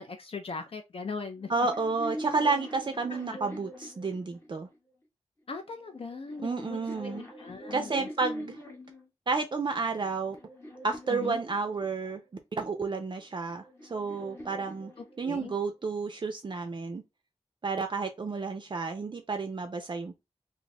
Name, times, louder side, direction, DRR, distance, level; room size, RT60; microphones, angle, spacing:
voice 1, 0.0-1.5 3.1-3.2 5.5-6.8 7.0-8.1 11.1-11.4 15.2-15.5, left 4 dB, 50° left, 0.4 m, -39 dB
sound 1, 1.4-4.8 5.7-9.1 9.7-12.2 13.2-15.6, equal, 20° left, 0.8 m, -43 dB
voice 2, 1.5-4.7 6.4-7.2 7.7-8.6 9.3-10.4 10.8-12.2 12.5-14.9 15.2-17.0 17.6-20.2, right 4 dB, 40° right, 0.4 m, -31 dB
2.5 x 2.3 x 4.0 m
wide cardioid pair, 120°, 12 cm